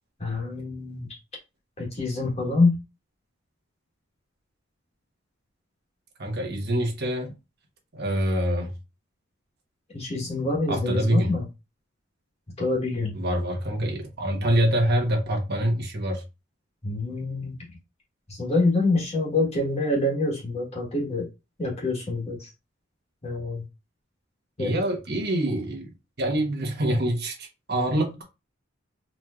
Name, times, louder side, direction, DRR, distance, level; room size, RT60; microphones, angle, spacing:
voice 1, 0.2-1.2 1.8-2.7 9.9-11.4 12.6-13.2 16.8-17.6 18.3-21.3 21.6-22.5 23.2-23.6 24.6-24.7, left 2 dB, 30° left, 1.3 m, -26 dB
voice 2, 6.2-7.3 7.9-8.7 10.7-11.3 13.1-16.2 24.6-25.9 26.2-28.2, right 1 dB, 55° right, 1.1 m, -25 dB
4.2 x 3.1 x 2.4 m
head